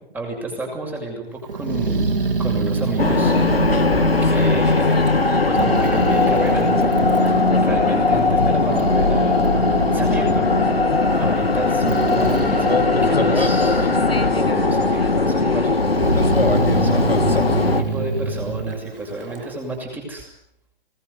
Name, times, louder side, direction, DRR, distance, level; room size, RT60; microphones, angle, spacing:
voice 1, 0.1-2.1 2.4-3.3 3.9-5.0 5.5-6.7 7.0-10.5 10.7-14.0 14.3-15.7 16.2-20.3, right 2 dB, 5° right, 1 dB, 6.9 m, -30 dB
Growling, 1.5-5.3 5.6-7.9 8.4-14.3 14.6-15.3 15.8-19.5, right 4 dB, 70° right, 3.5 m, -26 dB
sound 1, 3.0-17.8, left 3 dB, 85° left, 3.1 m, -19 dB
24.0 x 20.0 x 9.9 m, 0.70 s
figure-of-eight pair, 135°, 30 cm